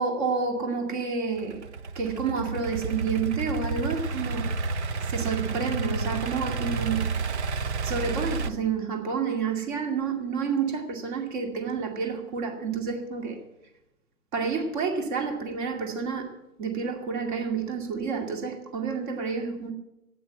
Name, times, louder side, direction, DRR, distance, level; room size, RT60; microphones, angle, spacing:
voice 1, 0.0-1.7 2.0-4.5 5.0-7.1 7.8-13.4 14.3-16.3 16.6-19.7, right 5 dB, 30° right, 2.3 m, -29 dB
Idling / Accelerating revving vroom, 1.4-8.5, right 4 dB, 50° right, 1.0 m, -30 dB
12.5 x 9.3 x 8.8 m
figure-of-eight pair, 135°, 45 cm